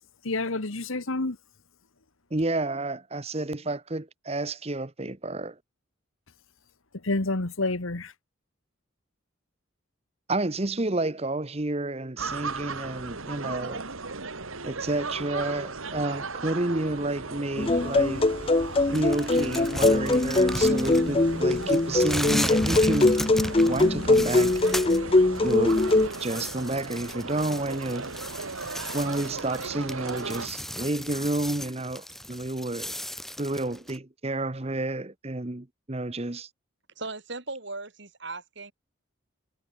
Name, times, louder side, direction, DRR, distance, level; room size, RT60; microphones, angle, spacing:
voice 1, 0.2-1.4 7.0-8.1, left 2 dB, 70° left, 1.6 m, -28 dB
voice 2, 2.3-5.6 10.3-13.9 14.6-18.3 18.9-23.2 23.7-24.5 25.4-25.9 26.2-28.1 28.9-32.9 33.4-36.5, right 2 dB, 30° right, 1.0 m, -30 dB
sound 1, 12.2-30.5, right 4 dB, 75° right, 2.6 m, -36 dB
sound 2, 17.6-26.1, left 2 dB, 25° left, 0.5 m, -22 dB
sound 3, 18.9-21.2 21.5-25.0 25.3-34.0, equal, ahead, 3.2 m, -36 dB
voice 3, 37.0-38.7, right 3 dB, 55° right, 3.5 m, -37 dB
head